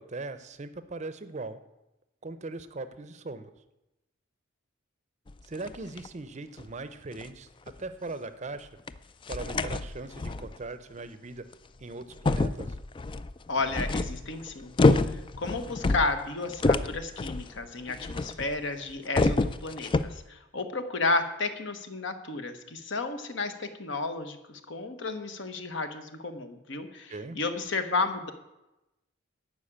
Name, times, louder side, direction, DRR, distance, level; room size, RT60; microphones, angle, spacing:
voice 1, 0.0-1.6 2.2-3.5 5.4-7.5 7.8-8.7 9.3-11.5 11.8-12.8 27.1-27.4, right 3 dB, 35° right, 12 dB, 0.6 m, -39 dB
sound 1, 5.3-6.1 6.6-6.7 7.1-7.3 7.7-7.8 8.9-9.0 9.3-10.6 11.5-11.6 12.1-18.6 18.9-20.2, left 3 dB, 25° left, 0.3 m, -27 dB
voice 2, 13.5-28.3, left 3 dB, 60° left, 8 dB, 1.1 m, -32 dB
11.5 x 5.0 x 8.6 m, 0.95 s
head